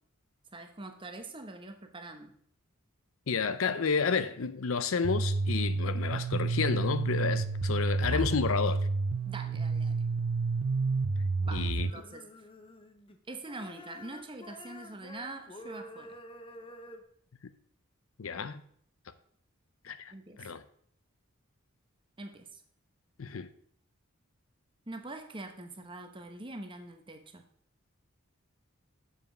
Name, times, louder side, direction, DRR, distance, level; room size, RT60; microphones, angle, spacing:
voice 1, 0.5-2.3 8.1-8.3 9.3-10.0 11.4-12.5 13.3-16.2 20.1-20.4 22.2-22.6 24.9-27.4, right 2 dB, 25° right, 0.9 m, -44 dB
voice 2, 3.3-8.9 11.5-11.9 18.2-18.6 19.8-20.1 20.4-20.6 23.2-23.5, left 5 dB, 75° left, 0.6 m, -31 dB
sound 1, 5.0-11.9, right 3 dB, 75° right, 0.5 m, -30 dB
sound 2, 11.8-13.2 13.4-17.0, left 1 dB, 25° left, 0.7 m, -49 dB
7.3 x 5.3 x 6.0 m
head